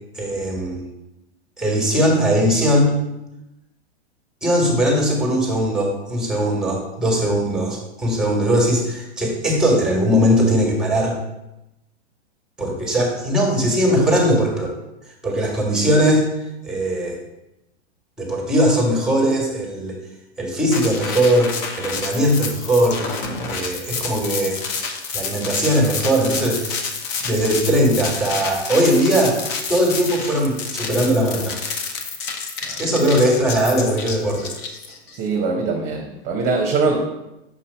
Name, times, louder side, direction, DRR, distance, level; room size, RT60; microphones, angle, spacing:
voice 1, 0.1-0.8 1.6-2.9 4.4-11.2 12.6-14.7 15.2-16.2 16.6-17.2 18.2-20.0 20.4-23.0 23.4-24.6 25.1-26.8 27.2-29.4 29.7-31.6 32.8-34.5, equal, ahead, -1 dB, 1.5 m, -19 dB
sound 1, 20.7-35.2, left 5 dB, 30° left, 0.8 m, -29 dB
voice 2, 35.2-37.0, right 4 dB, 30° right, 1 dB, 0.9 m, -22 dB
6.2 x 2.8 x 5.4 m, 0.91 s
hypercardioid pair, 125°, 33 cm